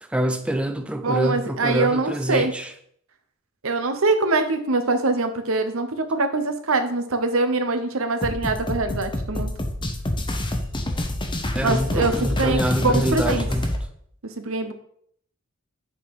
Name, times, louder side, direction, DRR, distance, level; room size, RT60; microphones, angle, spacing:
voice 1, 0.0-2.7 11.5-13.8, right 1 dB, 5° right, 0.4 m, -25 dB
voice 2, 1.0-2.5 3.6-9.6 11.6-13.4 14.4-14.7, right 3 dB, 70° right, 0.9 m, -23 dB
sound 1, 8.2-13.8, left 1 dB, 25° left, 0.9 m, -27 dB
8.5 x 3.9 x 4.8 m
head